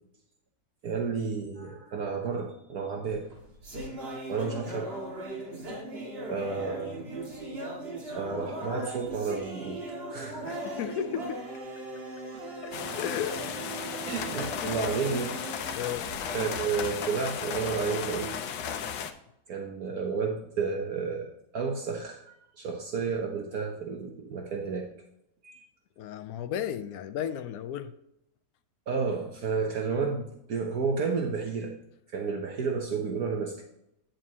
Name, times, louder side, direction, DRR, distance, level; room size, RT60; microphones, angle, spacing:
voice 1, 0.8-3.3 4.3-4.9 6.3-7.0 8.2-9.8 10.1-10.5 14.0-15.4 16.3-18.4 19.5-24.9 25.4-25.6 28.9-31.7 32.1-33.6, right 5 dB, 65° right, 1.4 m, -31 dB
sound 1, 3.1-16.5, right 1 dB, 35° right, 2.2 m, -39 dB
voice 2, 10.4-11.4 12.2-12.3 12.6-13.4 14.6-14.8 15.8-16.1 26.0-27.9, left 9 dB, 65° left, 1.0 m, -34 dB
sound 2, 12.7-19.1, left 7 dB, 90° left, 1.4 m, -35 dB
9.0 x 7.3 x 2.8 m
omnidirectional pair, 1.8 m